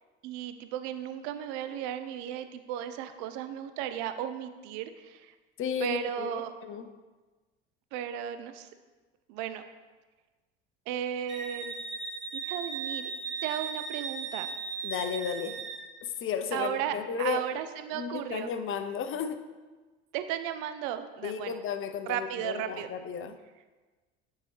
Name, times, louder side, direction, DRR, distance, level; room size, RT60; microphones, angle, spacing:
voice 1, 0.2-5.3 5.8-6.5 7.9-8.7 9.3-9.6 10.9-11.7 12.3-13.1 13.4-14.5 16.5-18.5 20.1-21.6 22.1-22.9, right 10 dB, 60° right, 10 dB, 0.6 m, -35 dB
voice 2, 5.6-6.3 6.6-6.8 14.8-15.6 16.0-17.6 17.9-19.4 21.2-23.3, left 7 dB, 40° left, 9 dB, 0.6 m, -33 dB
Wind instrument woodwind instrument, 11.3-15.8, right 5 dB, 35° right, 1.3 m, -37 dB
9.6 x 4.6 x 3.2 m, 1.3 s
hypercardioid pair, 70°, 33 cm